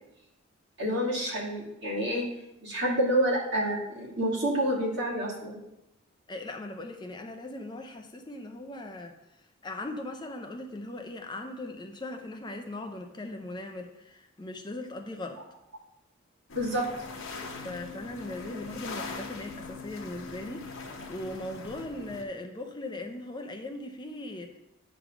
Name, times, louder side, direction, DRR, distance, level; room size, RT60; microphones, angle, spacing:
voice 1, 0.8-2.3 2.6-5.6 16.5-16.8, equal, 55° right, -5 dB, 2.5 m, -28 dB
voice 2, 6.3-9.2 9.6-15.4 17.6-24.6, left 1 dB, 20° left, 4 dB, 0.6 m, -39 dB
sound 1, 16.5-22.2, left 4 dB, 80° left, 0.9 m, -41 dB
8.9 x 3.4 x 6.1 m, 0.91 s
head